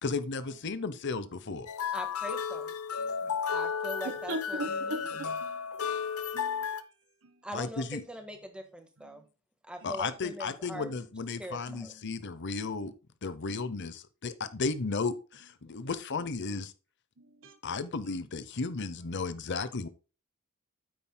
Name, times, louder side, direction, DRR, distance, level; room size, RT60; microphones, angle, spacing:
voice 1, 0.0-1.7 7.5-8.0 9.8-12.9 13.2-16.7 17.6-19.9, left 4 dB, 55° left, 0.7 m, -34 dB
sound 1, 1.7-6.8, left 6 dB, 85° left, 0.8 m, -33 dB
voice 2, 1.9-2.7 3.2-5.2 7.4-9.2 9.7-10.9 11.4-11.9, right 1 dB, 5° right, 1.5 m, -42 dB
voice 3, 3.0-3.4 4.0-5.8 6.3-6.9 7.2-7.5 9.0-9.2 9.8-10.1 11.6-12.1 12.7-12.9 14.4-14.5 16.2-16.3 17.2-17.6 18.1-18.3, right 1 dB, 60° right, 1.2 m, -42 dB
9.1 x 8.8 x 2.2 m
head